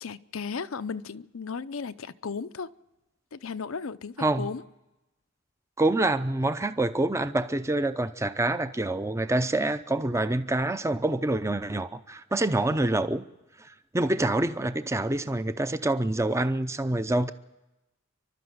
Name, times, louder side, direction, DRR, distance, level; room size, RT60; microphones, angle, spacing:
voice 1, 0.0-2.7 3.3-4.6, left 5 dB, 80° left, 0.7 m, -35 dB
voice 2, 5.8-13.2 13.9-17.3, right 2 dB, 15° right, 0.6 m, -26 dB
30.0 x 12.5 x 7.9 m
head